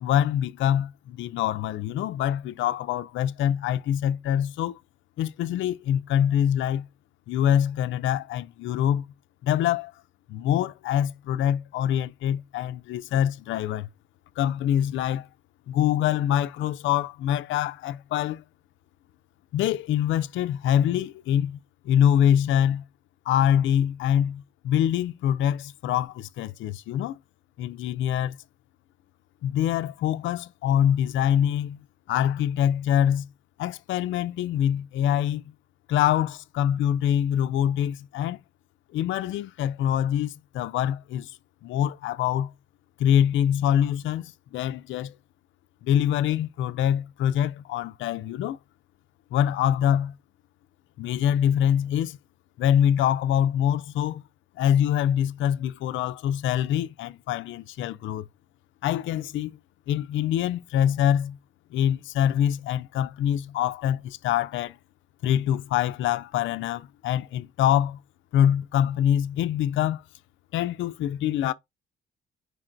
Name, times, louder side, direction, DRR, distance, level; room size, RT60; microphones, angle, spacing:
voice 1, 0.0-4.8 5.2-6.9 7.3-9.0 9.4-9.9 10.3-13.9 14.4-15.3 15.7-18.4 19.5-21.6 21.8-22.8 23.3-27.2 27.6-28.4 29.4-33.3 33.6-35.5 35.9-38.4 38.9-42.5 43.0-45.2 45.8-48.6 49.3-50.1 51.0-52.2 52.6-54.2 54.6-58.3 58.8-59.6 59.9-61.4 61.7-64.8 65.2-68.0 68.3-70.0 70.5-71.5, left 10 dB, 75° left, 0.4 m, -24 dB
4.5 x 2.5 x 4.3 m
cardioid pair, 90°, 20 cm